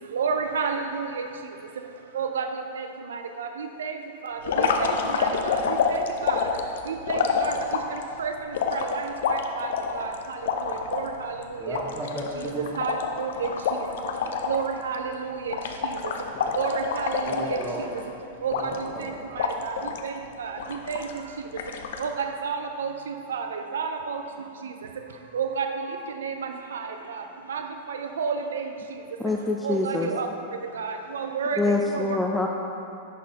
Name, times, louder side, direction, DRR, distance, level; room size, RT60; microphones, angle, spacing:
voice 1, 0.1-1.1 2.2-2.4 2.7-2.9 3.4-3.5 3.8-3.9 4.3-4.9 5.2-6.4 6.9-7.5 8.2-8.3 8.7-9.0 9.3-9.7 9.9-10.1 10.7-11.3 11.7-11.8 12.8-13.5 14.5-15.5 16.6-17.6 18.4-18.5 19.4-19.7 20.0-20.1 20.4-20.5 20.9-21.0 22.0-22.9 23.3-24.2 25.3-25.7 26.2-26.3 26.7-26.8 27.5-27.6 27.9-28.6 29.6-30.3 30.8-31.6 31.9-32.0, right 6 dB, 75° right, 5 dB, 0.4 m, -30 dB
sound 1, 4.4-8.0 8.5-11.1 11.4-11.5 11.7-14.7 14.9-15.2 15.5-18.0 18.5-19.0 19.4-20.1 20.6-21.2 21.6-22.1, left 6 dB, 65° left, 0.5 m, -27 dB
voice 2, 11.6-12.7 17.2-17.9 18.5-18.6 18.9-19.1, right 1 dB, 10° right, -3 dB, 1.2 m, -34 dB
voice 3, 29.2-30.1 31.6-32.5, left 2 dB, 10° left, 0 dB, 0.4 m, -25 dB
10.5 x 4.2 x 2.8 m, 2.7 s
hypercardioid pair, 95°, 0 cm